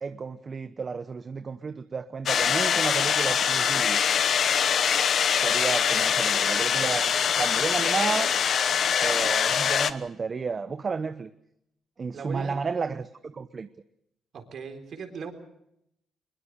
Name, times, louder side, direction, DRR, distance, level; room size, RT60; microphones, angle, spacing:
voice 1, 0.0-4.0 5.4-8.3 9.0-11.3 12.0-13.7, right 5 dB, 40° right, 0.8 m, -32 dB
sound 1, 2.3-9.9, left 8 dB, 60° left, 1.1 m, -23 dB
voice 2, 12.1-12.6 14.3-15.3, right 5 dB, 60° right, 4.1 m, -38 dB
22.0 x 22.0 x 6.5 m
cardioid pair, 90°, 0 cm